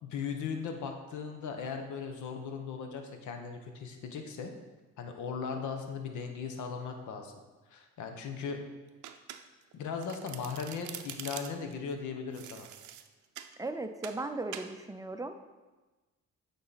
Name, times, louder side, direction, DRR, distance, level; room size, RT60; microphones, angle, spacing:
voice 1, 0.0-4.5 5.0-7.3 7.7-8.6 9.7-12.7, left 6 dB, 75° left, 5 dB, 1.0 m, -38 dB
Domestic sounds home sounds, 9.0-9.7 10.0-11.7 12.3-13.6 14.0-14.2 14.5-14.7, right 10 dB, 75° right, 0.5 m, -44 dB
voice 2, 13.6-15.4, right 2 dB, 10° right, 7 dB, 0.5 m, -37 dB
8.7 x 3.9 x 4.1 m, 1.2 s
cardioid pair, 90°, 30 cm